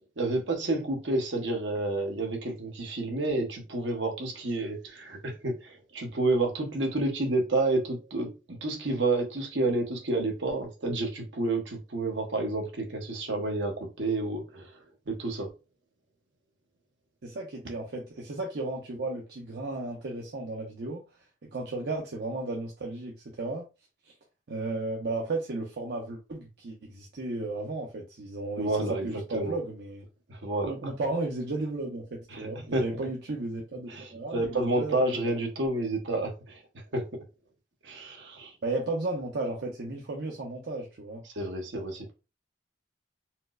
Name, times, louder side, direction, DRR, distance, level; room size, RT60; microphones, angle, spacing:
voice 1, 0.2-15.5 28.6-29.6 30.3-30.9 32.3-32.8 33.9-36.6 36.9-37.1 37.8-38.5 41.2-42.1, right 2 dB, 80° right, 1.0 m, -30 dB
voice 2, 17.2-21.0 21.5-23.6 24.5-30.0 30.7-35.3 38.6-41.2, right 2 dB, 65° right, 0.6 m, -34 dB
4.3 x 2.0 x 2.4 m
head